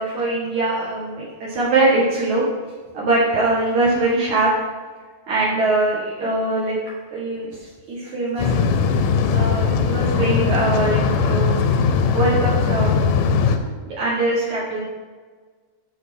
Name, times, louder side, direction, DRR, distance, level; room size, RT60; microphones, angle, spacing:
voice 1, 0.0-2.4 2.9-4.5 5.3-6.8 7.1-7.5 7.9-8.6 9.3-11.5 12.1-12.9 14.0-14.8, right 2 dB, 60° right, -7 dB, 2.7 m, -22 dB
sound 1, 8.4-13.6, left 5 dB, 80° left, 2.2 m, -19 dB
12.0 x 4.2 x 6.3 m, 1.4 s
omnidirectional pair, 4.1 m